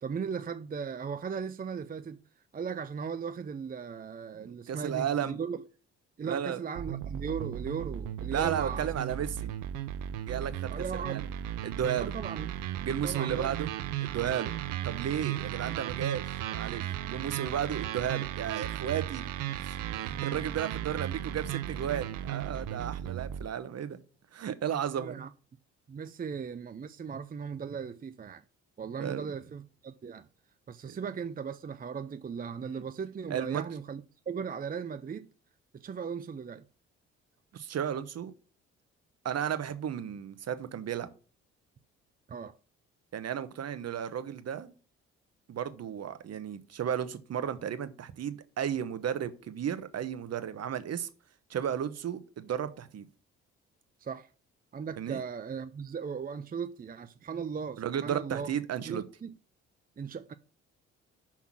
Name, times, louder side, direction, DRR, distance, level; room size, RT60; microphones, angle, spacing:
voice 1, 0.0-2.2 2.5-5.6 6.2-9.2 10.7-11.2 12.0-12.5 13.0-13.6 20.1-20.5 24.9-25.3 25.9-28.4 28.8-30.3 30.7-35.3 35.7-36.6 42.3-42.6 54.0-54.3 54.7-58.5 58.8-59.3 60.0-60.3, right 6 dB, 25° right, 0.6 m, -37 dB
voice 2, 4.4-5.4 6.2-6.6 8.3-9.5 10.2-11.3 11.6-12.1 12.8-13.7 14.0-14.5 14.8-19.3 19.6-24.0 24.3-25.2 29.0-29.3 30.8-31.0 32.6-32.8 33.3-33.6 37.5-38.3 39.2-41.1 43.1-44.7 45.5-51.1 51.5-53.1 55.0-55.2 57.8-59.0, right 9 dB, 50° right, 1.1 m, -34 dB
sound 1, 6.7-23.5, right 11 dB, 70° right, 0.7 m, -35 dB
5.9 x 5.9 x 5.9 m
hypercardioid pair, 50°, 32 cm